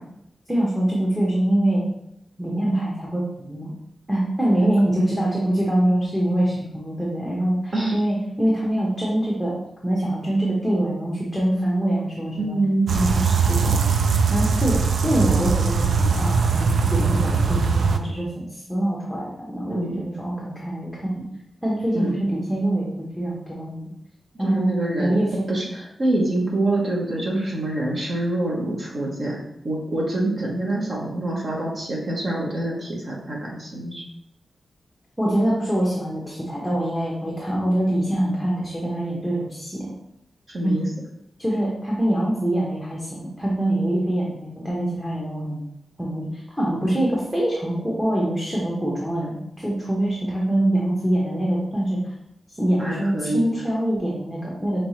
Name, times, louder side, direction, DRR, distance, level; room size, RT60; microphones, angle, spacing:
voice 1, 0.5-1.8 2.4-3.7 4.1-9.6 9.8-12.6 12.9-13.8 14.3-14.8 15.0-21.2 21.6-22.9 23.2-23.9 24.4-24.7 25.0-25.4 35.2-39.9 40.6-40.9 41.4-45.6 46.0-52.0 52.6-54.8, right 1 dB, ahead, -4 dB, 0.8 m, -24 dB
voice 2, 12.4-12.9 19.7-20.0 21.9-22.2 24.4-25.1 25.5-29.4 29.6-34.0 40.5-40.8 52.8-53.5, right 2 dB, 45° right, -2 dB, 1.0 m, -25 dB
sound 1, 12.9-18.0, right 5 dB, 70° right, 0.3 m, -20 dB
5.2 x 3.1 x 3.1 m, 0.80 s
wide cardioid pair, 165°, 0 cm